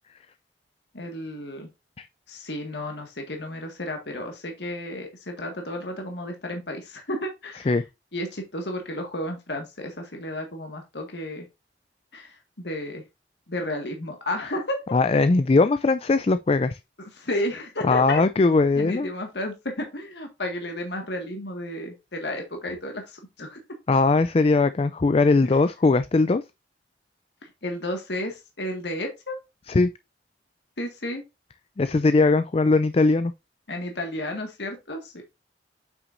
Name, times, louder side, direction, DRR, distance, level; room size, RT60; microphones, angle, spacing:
voice 1, 0.9-1.7 2.3-7.8 8.1-11.5 12.1-13.0 13.5-14.8 17.2-18.2 18.8-23.6 27.6-29.4 30.8-31.2 33.7-35.2, left 1 dB, 70° left, 1.7 m, -32 dB
voice 2, 14.9-16.8 17.8-19.1 23.9-26.4 29.7-29.9 31.8-33.3, left 3 dB, 35° left, 0.4 m, -20 dB
8.2 x 6.0 x 2.5 m
head